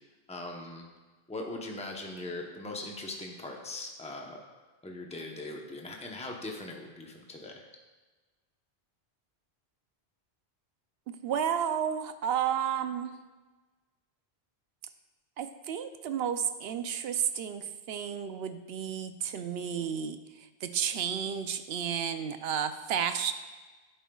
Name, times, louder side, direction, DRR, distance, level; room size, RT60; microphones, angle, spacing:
voice 1, 0.3-0.9 1.3-4.4 4.8-7.6, left 2 dB, 5° left, 1 dB, 0.8 m, -40 dB
voice 2, 11.2-13.1 15.4-20.2 20.6-23.3, right 8 dB, 75° right, 9 dB, 0.8 m, -32 dB
11.0 x 8.8 x 2.3 m, 1.3 s
omnidirectional pair, 1.1 m